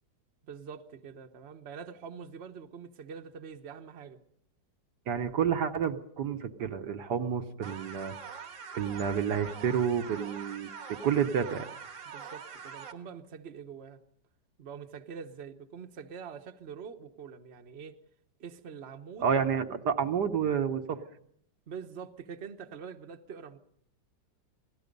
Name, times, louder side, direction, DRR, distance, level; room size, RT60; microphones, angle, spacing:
voice 1, 0.4-4.2 12.0-14.0 14.6-18.0 18.4-19.3 21.7-23.6, right 6 dB, 40° right, 6 dB, 1.2 m, -45 dB
voice 2, 5.1-8.4 8.7-11.7 19.2-21.0, right 7 dB, 65° right, 6 dB, 1.5 m, -30 dB
sound 1, 7.6-12.9, right 6 dB, 80° right, 2.2 m, -44 dB
28.0 x 17.5 x 5.3 m, 0.70 s
omnidirectional pair, 2.0 m